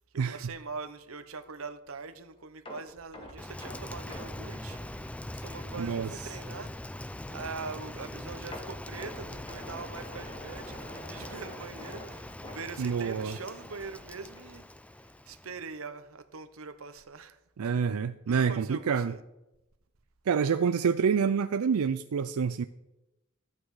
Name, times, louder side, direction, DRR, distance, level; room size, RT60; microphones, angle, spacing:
voice 1, 0.1-4.8 5.3-7.0 7.3-14.7 15.2-17.4 18.3-19.2, right 4 dB, 70° right, 0.9 m, -42 dB
sound 1, 2.7-5.7 6.0-6.2 6.6-6.7 8.5-13.4 13.7-13.9 14.4-14.5, equal, 25° left, 1.9 m, -46 dB
Rain, 3.4-15.8, left 1 dB, 5° left, 0.4 m, -42 dB
voice 2, 5.8-6.4 12.8-13.4 17.6-19.1 20.3-22.6, right 6 dB, 90° right, 0.4 m, -27 dB
14.0 x 8.7 x 4.8 m
head